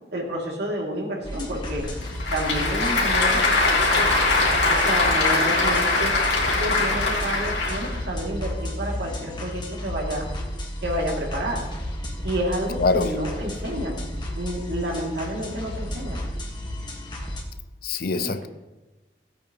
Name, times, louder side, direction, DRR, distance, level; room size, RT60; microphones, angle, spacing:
voice 1, 0.1-1.8 2.3-4.1 4.7-10.3 10.8-11.6 12.2-14.0 14.4-16.2 18.1-18.5, equal, 70° right, 2.5 m, -30 dB
sound 1, 1.2-17.4, equal, 25° left, 1.4 m, -32 dB
Applause / Crowd, 1.8-8.0, left 3 dB, 85° left, 2.6 m, -22 dB
voice 2, 12.8-13.1 17.8-18.5, left 3 dB, 55° left, 0.5 m, -23 dB
15.5 x 8.6 x 3.0 m
head